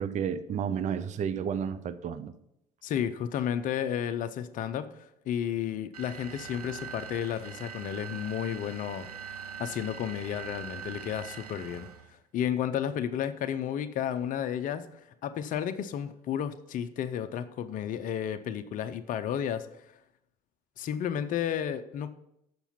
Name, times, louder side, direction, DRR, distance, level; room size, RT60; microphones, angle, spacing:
voice 1, 0.0-2.3, right 7 dB, 40° right, 13 dB, 0.6 m, -31 dB
voice 2, 2.8-19.7 20.8-22.1, left 9 dB, 45° left, 10 dB, 0.6 m, -32 dB
sound 1, 5.9-12.1, right 7 dB, 85° right, 0.5 m, -43 dB
7.0 x 5.9 x 5.6 m, 0.80 s
figure-of-eight pair, 55°, 19 cm